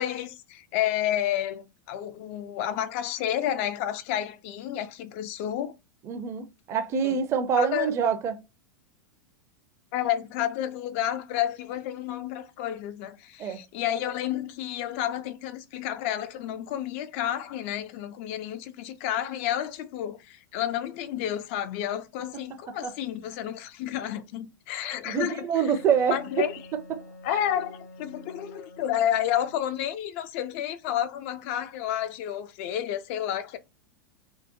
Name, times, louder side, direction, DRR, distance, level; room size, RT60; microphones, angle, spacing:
voice 1, 0.0-5.7 7.0-7.2 7.6-7.9 9.9-25.5 26.1-26.6 27.2-33.6, left 11 dB, 40° left, 0.4 m, -30 dB
voice 2, 6.0-8.4 13.4-13.6 22.8-22.9 24.8-27.4, right 7 dB, 25° right, 0.5 m, -27 dB
Wind instrument woodwind instrument, 25.8-29.9, left 2 dB, 70° left, 0.8 m, -48 dB
2.8 x 2.1 x 2.5 m
figure-of-eight pair, 90°, 10 cm